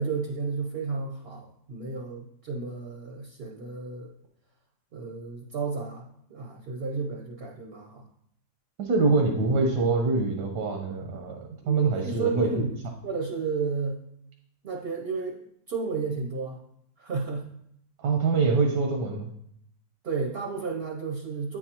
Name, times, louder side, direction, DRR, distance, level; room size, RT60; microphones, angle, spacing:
voice 1, 0.0-4.1 4.9-8.0 11.6-12.8 13.0-14.0 14.6-16.6 17.0-17.5 20.0-21.6, right 4 dB, 55° right, 1 dB, 0.7 m, -32 dB
voice 2, 8.8-11.4 11.7-12.5 18.0-19.3, right 4 dB, 85° right, 2 dB, 1.4 m, -24 dB
8.5 x 4.6 x 2.9 m, 0.72 s
omnidirectional pair, 1.8 m